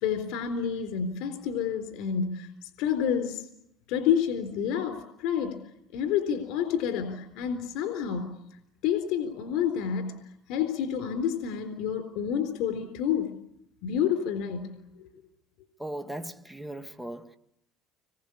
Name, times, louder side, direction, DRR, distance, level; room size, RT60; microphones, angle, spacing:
voice 1, 0.0-2.5 2.8-3.5 3.9-5.6 5.9-8.3 8.8-10.1 10.5-13.4 13.8-14.7, left 8 dB, 75° left, 3.9 m, -29 dB
voice 2, 15.8-17.4, right 1 dB, 5° right, 1.7 m, -38 dB
27.0 x 22.5 x 8.5 m
cardioid pair, 115°, 0 cm